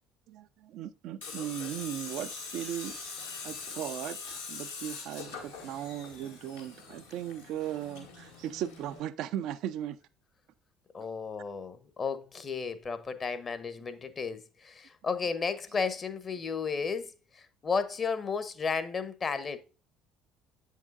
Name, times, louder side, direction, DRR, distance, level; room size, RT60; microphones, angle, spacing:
voice 1, 0.3-3.1 3.4-10.0, right 11 dB, 55° right, 0.4 m, -37 dB
Tools, 1.2-9.0, left 4 dB, 80° left, 2.0 m, -43 dB
voice 2, 10.9-19.6, left 5 dB, 35° left, 0.9 m, -33 dB
8.6 x 6.5 x 2.5 m
figure-of-eight pair, 55°, 0 cm